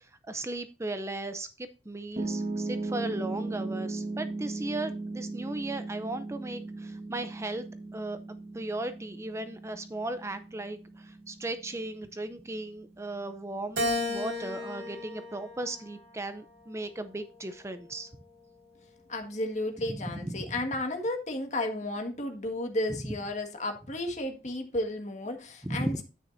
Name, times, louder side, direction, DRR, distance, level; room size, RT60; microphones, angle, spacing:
voice 1, 0.0-7.7 7.9-18.1 19.9-20.5 22.9-23.0 25.6-26.0, right 2 dB, 15° right, 0.5 m, -36 dB
Piano, 2.2-14.3, right 2 dB, 35° right, 1.2 m, -38 dB
Keyboard (musical), 13.8-16.2 16.8-18.1, left 2 dB, 85° right, 2.1 m, -35 dB
voice 2, 19.1-26.0, left 1 dB, 45° left, 1.7 m, -33 dB
9.9 x 9.0 x 2.6 m
head